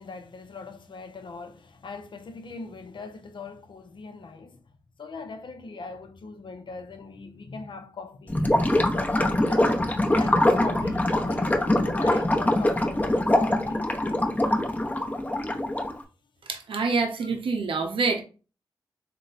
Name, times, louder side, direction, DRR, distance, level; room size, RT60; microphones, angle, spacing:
voice 1, 0.0-4.6 5.0-9.7 10.1-14.0, left 3 dB, 60° left, 0.6 m, -40 dB
Gurgling / Liquid, 8.3-16.0, left 1 dB, 15° left, 0.8 m, -23 dB
voice 2, 16.5-18.2, right 4 dB, 75° right, 0.6 m, -26 dB
3.7 x 2.1 x 4.0 m
cardioid pair, 55°, 9 cm